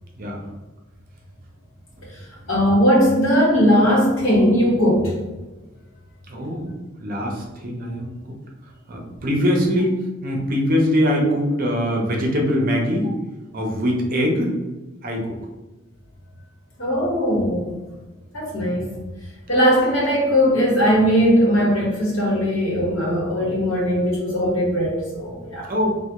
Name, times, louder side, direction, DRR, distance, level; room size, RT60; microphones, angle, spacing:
voice 1, 2.5-5.1 16.8-17.7 18.3-18.9 19.5-25.7, equal, 70° left, -3 dB, 1.1 m, -19 dB
voice 2, 6.3-6.7 7.0-8.3 8.9-13.1 13.5-14.5 15.0-15.3 25.7-26.0, equal, 45° right, 0 dB, 0.6 m, -22 dB
3.2 x 2.1 x 2.9 m, 1.2 s
head